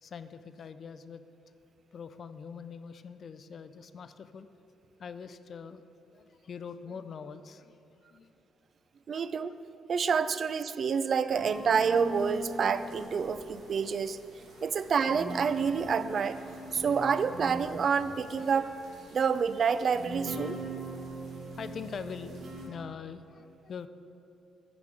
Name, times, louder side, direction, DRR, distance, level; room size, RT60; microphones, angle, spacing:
voice 1, 0.0-1.2 1.9-4.5 5.0-5.9 6.1-7.8 8.1-8.3 9.1-9.3 14.4-14.6 18.3-18.4 21.0-23.9, left 6 dB, 50° left, 11 dB, 0.4 m, -43 dB
voice 2, 9.1-9.6 9.9-14.2 14.6-16.4 16.7-18.7 19.1-20.6, right 6 dB, 50° right, 13 dB, 0.3 m, -28 dB
sound 1, 11.3-22.7, right 1 dB, 75° right, 1.6 m, -42 dB
6.9 x 5.0 x 6.6 m, 2.9 s
cardioid pair, 90°, 0 cm